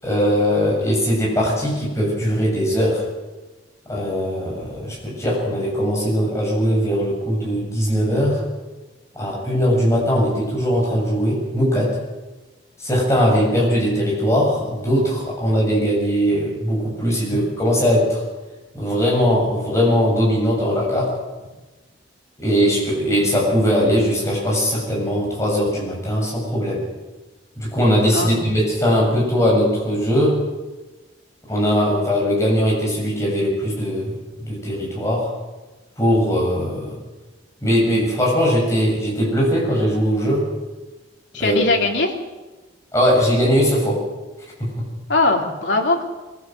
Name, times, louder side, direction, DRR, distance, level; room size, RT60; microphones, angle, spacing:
voice 1, 0.0-3.0 3.9-8.4 9.1-11.9 12.8-18.2 18.7-21.1 22.4-26.8 27.6-30.4 31.5-35.3 36.0-37.0 37.6-40.4 41.4-41.6 42.9-44.0 44.6-44.7, equal, 15° left, -3 dB, 7.4 m, -20 dB
voice 2, 41.3-42.1 45.1-46.0, left 2 dB, 75° left, 1 dB, 3.1 m, -20 dB
22.5 x 15.5 x 7.8 m, 1.2 s
head